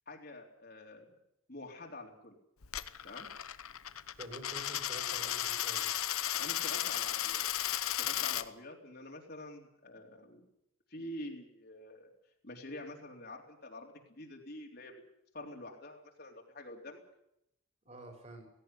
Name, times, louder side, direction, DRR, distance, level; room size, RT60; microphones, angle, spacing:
voice 1, 0.1-1.1 1.5-2.4 3.0-3.3 6.4-7.5 8.0-10.4 10.9-12.1 12.4-14.9 15.3-17.0, left 1 dB, 45° left, 1 dB, 3.7 m, -47 dB
Coin (dropping), 2.6-8.4, left 12 dB, 80° left, 1.0 m, -35 dB
voice 2, 4.2-5.9 17.8-18.5, right 1 dB, 30° right, 4 dB, 5.1 m, -48 dB
17.5 x 17.5 x 9.9 m, 0.79 s
head